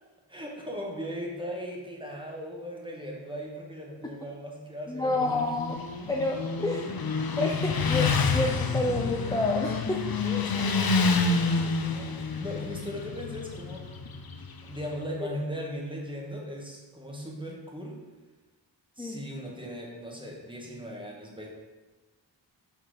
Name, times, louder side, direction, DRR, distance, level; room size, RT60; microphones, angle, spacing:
voice 1, 0.3-5.5 10.2-13.9 14.6-18.0 19.0-21.5, equal, 10° right, -2 dB, 1.5 m, -38 dB
voice 2, 4.9-6.9 7.4-10.1 15.2-15.3 19.0-19.2, left 1 dB, 10° left, 1 dB, 0.6 m, -29 dB
Motorcycle, 5.1-14.9, left 4 dB, 55° left, 0.6 m, -28 dB
6.4 x 4.3 x 4.8 m, 1.2 s
wide cardioid pair, 55°, 43 cm